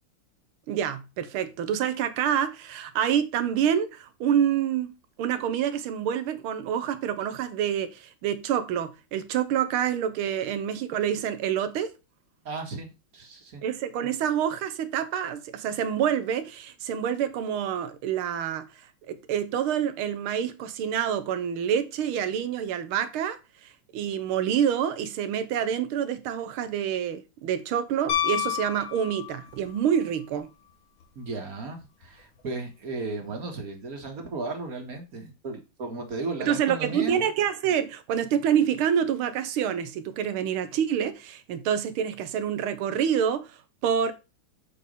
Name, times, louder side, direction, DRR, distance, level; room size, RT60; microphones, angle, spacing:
voice 1, 0.7-11.9 13.6-18.7 19.1-23.4 23.9-30.5 36.4-43.5 43.8-44.1, right 9 dB, 90° right, 1.7 m, -27 dB
voice 2, 12.5-12.9 13.1-13.6 31.2-37.2, right 3 dB, 45° right, 1.7 m, -35 dB
Piano, 28.1-29.7 32.0-32.1, left 11 dB, 70° left, 2.1 m, -29 dB
7.0 x 4.2 x 5.2 m
omnidirectional pair, 2.3 m